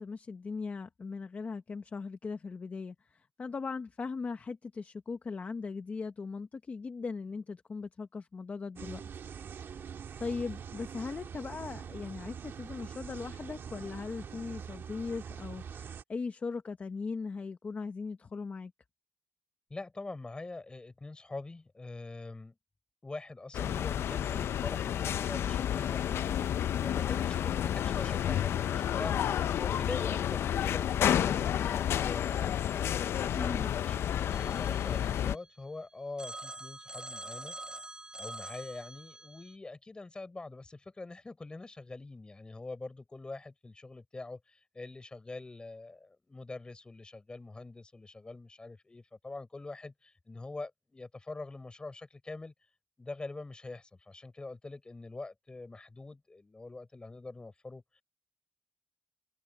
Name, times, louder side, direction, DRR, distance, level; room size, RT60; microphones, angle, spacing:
voice 1, 0.0-9.1 9.5-9.9 10.2-18.7 33.4-33.7, left 4 dB, 35° left, 1.1 m, -39 dB
sound 1, 8.8-16.0, right 7 dB, 60° right, 1.7 m, -44 dB
voice 2, 19.7-22.6 23.0-26.5 26.8-32.6 33.0-37.6 38.2-52.5 53.0-58.0, left 3 dB, 20° left, 4.4 m, -44 dB
sound 2, 23.5-35.4, left 10 dB, 70° left, 0.5 m, -30 dB
Telephone, 34.3-35.7 36.2-39.6, right 2 dB, 20° right, 3.6 m, -46 dB
cardioid pair, 105°, 4 cm